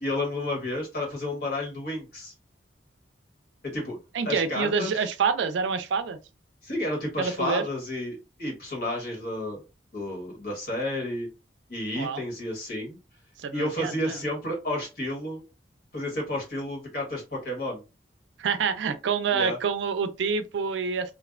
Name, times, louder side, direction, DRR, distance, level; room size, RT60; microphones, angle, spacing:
voice 1, 0.0-2.3 3.6-4.0 4.2-5.1 6.6-9.6 9.9-11.3 11.7-13.0 13.5-15.4 15.9-17.8 19.3-19.6, left 1 dB, 60° left, 1.2 m, -31 dB
voice 2, 4.1-6.2 7.2-7.6 12.0-12.2 13.4-14.2 18.4-21.1, right 5 dB, 80° right, 0.4 m, -27 dB
2.5 x 2.0 x 2.4 m
head